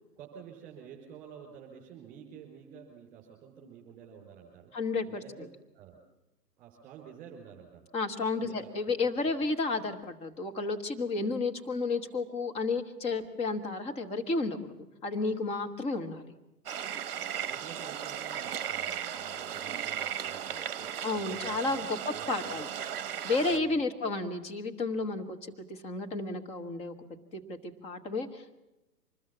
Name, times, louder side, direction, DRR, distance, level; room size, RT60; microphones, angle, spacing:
voice 1, 0.2-4.7 5.1-6.0 6.6-7.9 8.4-9.1 9.4-9.5 17.5-20.9 21.3-21.9 22.1-22.6 23.5-23.7, right 7 dB, 15° right, -1 dB, 5.4 m, -50 dB
voice 2, 4.7-5.2 7.9-14.7 15.0-16.3 21.0-22.7 23.2-26.9 27.3-28.5, left 3 dB, 10° left, 6 dB, 1.4 m, -32 dB
sound 1, 16.7-23.6, right 9 dB, 35° right, 1.4 m, -36 dB
26.5 x 21.0 x 7.3 m, 0.98 s
figure-of-eight pair, 125°, 49 cm